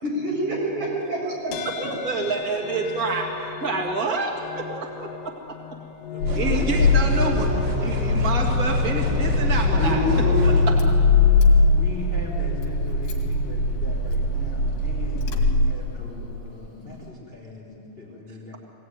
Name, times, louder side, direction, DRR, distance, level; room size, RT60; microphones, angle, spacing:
voice 1, 0.0-1.9 9.7-10.6, right 1 dB, 45° right, -4 dB, 7.8 m, -26 dB
sound 1, 1.5-15.0, left 7 dB, 80° left, 2.0 m, -37 dB
voice 2, 1.6-5.3 6.3-10.7, right 3 dB, 65° right, 0 dB, 0.8 m, -28 dB
voice 3, 6.1-6.7 11.7-18.6, left 2 dB, 15° left, -3 dB, 3.4 m, -39 dB
Car / Engine starting, 6.2-16.3, left 3 dB, 50° left, 3.3 m, -21 dB
sound 2, 6.3-10.6, equal, 85° right, 5.3 m, -29 dB
23.5 x 17.5 x 9.4 m, 2.9 s
omnidirectional pair, 5.4 m